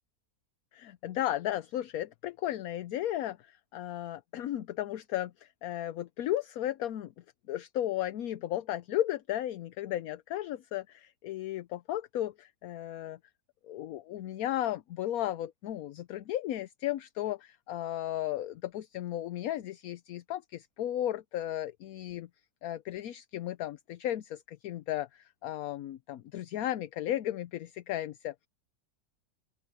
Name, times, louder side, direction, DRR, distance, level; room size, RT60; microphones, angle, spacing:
voice 1, 0.7-7.1 7.5-13.2 13.6-22.3 22.6-28.5, left 13 dB, 65° left, 1.0 m, -35 dB
open air
omnidirectional pair, 1.8 m